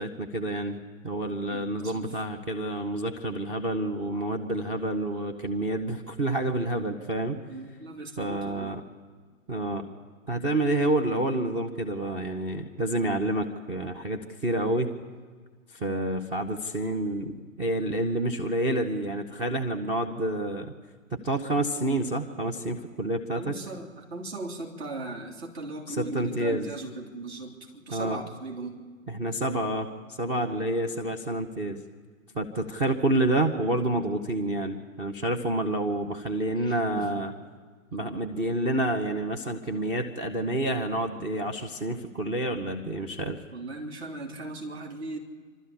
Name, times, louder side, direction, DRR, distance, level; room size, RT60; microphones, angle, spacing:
voice 1, 0.0-7.4 8.2-8.8 9.5-9.9 10.3-15.0 15.7-20.7 21.1-23.6 25.9-26.7 27.9-28.2 29.1-29.9 30.2-31.8 32.3-37.3 37.9-43.4, right 1 dB, 15° right, 4 dB, 0.8 m, -28 dB
voice 2, 1.5-2.2 7.5-8.8 23.3-28.8 36.6-37.1 43.5-45.2, right 2 dB, 50° right, 0 dB, 3.4 m, -38 dB
27.5 x 13.0 x 8.5 m, 1.5 s
figure-of-eight pair, 120°, 41 cm